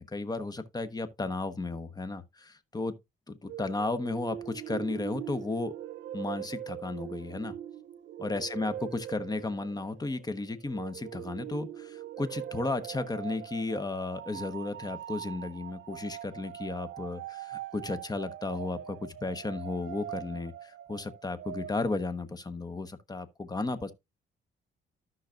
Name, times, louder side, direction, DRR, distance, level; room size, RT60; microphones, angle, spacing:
voice 1, 0.0-2.9 3.3-5.7 6.1-7.5 8.2-23.9, left 3 dB, 20° left, 1.1 m, -34 dB
sound 1, 3.5-21.7, right 11 dB, 70° right, 0.6 m, -42 dB
13.5 x 5.8 x 2.5 m
cardioid pair, 90°, 20 cm